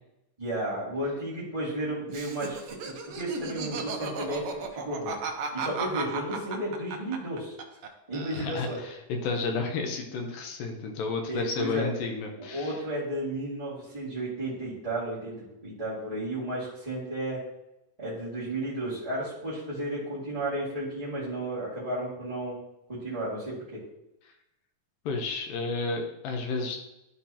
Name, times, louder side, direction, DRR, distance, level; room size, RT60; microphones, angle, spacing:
voice 1, 0.4-7.5 8.1-8.8 11.2-11.9 12.4-15.4 15.6-17.4 18.0-22.6 22.9-23.8, right 1 dB, 15° right, -12 dB, 1.6 m, -33 dB
Laughter, 2.1-8.9, right 5 dB, 90° right, 1.3 m, -35 dB
voice 2, 8.4-12.8 25.1-26.8, left 4 dB, 85° left, 2 dB, 2.5 m, -31 dB
12.0 x 4.4 x 2.8 m, 0.88 s
omnidirectional pair, 3.8 m